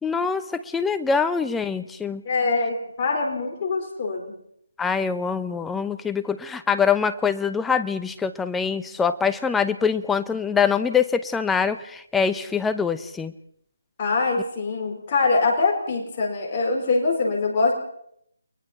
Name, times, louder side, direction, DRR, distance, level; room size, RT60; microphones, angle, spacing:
voice 1, 0.0-2.2 4.8-13.3, left 6 dB, 5° left, 11 dB, 0.8 m, -24 dB
voice 2, 2.2-4.3 14.0-17.7, left 3 dB, 30° left, 1 dB, 4.5 m, -23 dB
30.0 x 22.5 x 4.4 m, 0.69 s
figure-of-eight pair, 165°, 0 cm